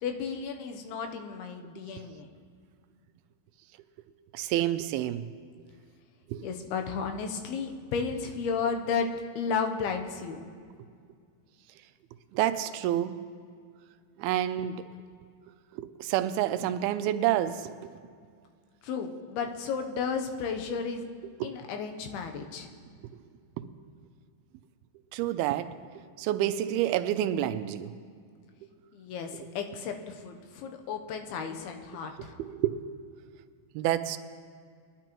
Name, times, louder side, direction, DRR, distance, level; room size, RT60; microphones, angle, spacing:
voice 1, 0.0-2.3 6.4-9.1 9.4-10.5 18.8-21.0 21.4-22.7 28.9-32.3, left 6 dB, 85° left, 5 dB, 2.8 m, -33 dB
voice 2, 4.3-5.2 6.3-6.5 12.3-13.2 14.2-14.8 15.7-17.9 21.4-21.7 23.6-23.7 25.1-25.8 26.2-27.9 32.2-32.8 33.8-34.2, right 12 dB, 85° right, 10 dB, 2.5 m, -29 dB
21.5 x 11.0 x 3.0 m, 2.1 s
omnidirectional pair, 4.4 m